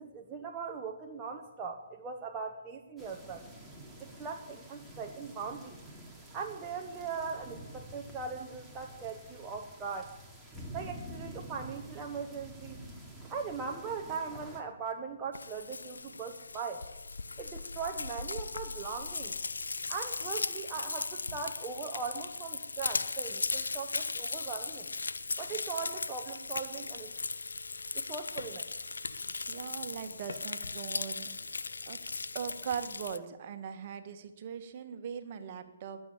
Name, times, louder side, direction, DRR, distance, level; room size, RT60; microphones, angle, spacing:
voice 1, 0.0-3.5 4.0-5.8 6.3-10.1 10.7-12.8 13.3-16.9 17.4-19.3 19.9-24.9 25.4-27.1 27.9-28.7, right 5 dB, 20° right, 1 dB, 1.2 m, -40 dB
sound 1, 3.0-14.6, right 1 dB, ahead, 2.7 m, -48 dB
Frying (food), 15.3-33.2, left 4 dB, 70° left, 0.7 m, -37 dB
voice 2, 29.5-31.3 31.9-32.0 32.3-36.0, right 7 dB, 40° right, 7 dB, 1.7 m, -40 dB
21.0 x 8.0 x 8.6 m, 1.1 s
figure-of-eight pair, 130°, 0 cm